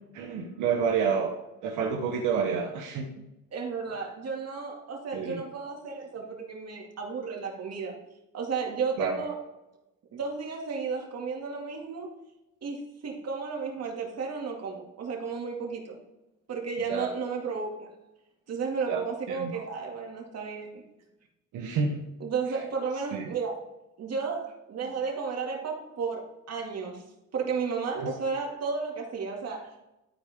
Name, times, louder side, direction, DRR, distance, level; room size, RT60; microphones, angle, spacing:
voice 1, 0.1-1.3 1.6-3.1 5.1-5.4 9.0-9.1 16.9-17.1 18.9-19.0 19.3-19.6 21.5-22.1 23.1-23.2 28.0-28.1, right 6 dB, 90° right, 1 dB, 1.1 m, -29 dB
voice 2, 3.5-8.0 8.3-9.4 10.1-12.1 12.6-16.0 16.5-17.9 18.5-20.8 22.2-23.6 24.0-27.0 27.3-29.7, right 5 dB, 55° right, 0 dB, 2.3 m, -33 dB
12.5 x 4.8 x 3.6 m, 0.95 s
cardioid pair, 90°, 30 cm